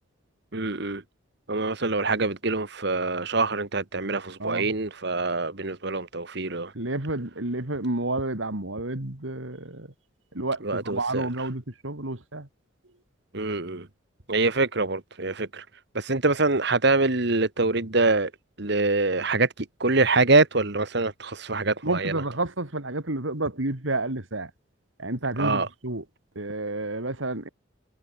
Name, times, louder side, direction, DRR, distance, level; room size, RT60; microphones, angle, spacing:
voice 1, 0.5-1.0 1.5-6.7 10.6-11.3 13.3-13.9 14.3-15.7 15.9-18.3 18.6-22.1 25.4-25.7, right 3 dB, 55° right, 1.8 m, -25 dB
voice 2, 4.4-4.7 6.7-9.9 10.3-12.5 21.8-24.5 25.0-26.0 26.3-27.5, right 2 dB, 75° right, 2.8 m, -30 dB
head